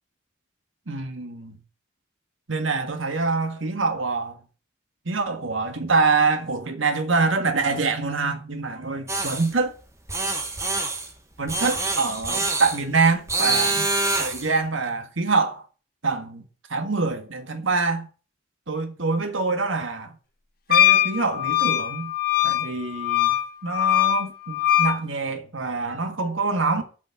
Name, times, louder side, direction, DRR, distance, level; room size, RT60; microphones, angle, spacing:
voice 1, 0.9-1.6 2.5-4.4 5.0-9.7 11.4-13.8 14.2-15.6 16.0-16.4 16.7-18.1 18.7-20.1 20.7-22.1 22.4-23.3 23.6-26.8, right 4 dB, 85° right, 1.7 m, -25 dB
sound 1, 9.1-9.5 10.1-11.1 11.5-12.8 13.3-14.5, right 2 dB, 15° right, 1.4 m, -25 dB
Wind instrument woodwind instrument, 20.7-25.0, left 12 dB, 50° left, 1.1 m, -21 dB
8.8 x 5.5 x 7.8 m
head